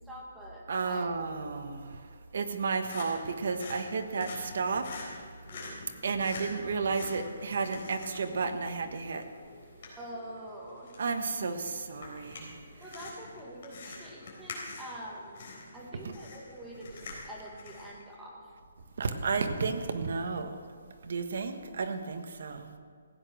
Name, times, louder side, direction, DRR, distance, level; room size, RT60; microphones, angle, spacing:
voice 1, 0.0-1.1 10.0-10.9 12.8-15.4 15.7-18.5, right 1 dB, 5° right, -5 dB, 1.9 m, -45 dB
voice 2, 0.7-5.2 6.0-9.2 11.0-12.5 16.0-16.1 19.0-20.6 21.0-22.7, right 4 dB, 55° right, 7 dB, 1.3 m, -32 dB
sound 1, 2.4-18.0, left 3 dB, 40° left, 3.9 m, -47 dB
15.5 x 9.1 x 6.2 m, 2.2 s
hypercardioid pair, 175°, 0 cm